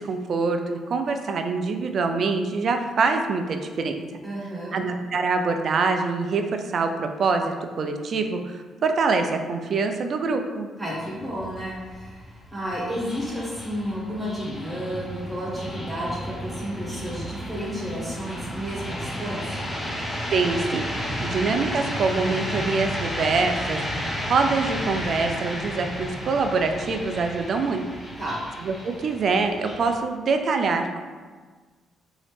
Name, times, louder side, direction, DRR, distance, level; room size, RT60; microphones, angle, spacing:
voice 1, 0.0-4.0 4.7-10.7 20.3-20.9 21.2-23.8 24.3-27.9 28.6-31.0, right 4 dB, 55° right, 5 dB, 0.3 m, -25 dB
voice 2, 4.2-4.8 10.8-19.8 28.2-28.4, equal, 20° right, -6 dB, 1.1 m, -32 dB
sound 1, 11.2-29.9, equal, 35° left, 1.1 m, -33 dB
3.0 x 2.7 x 3.2 m, 1.5 s
supercardioid pair, 75°, 0 cm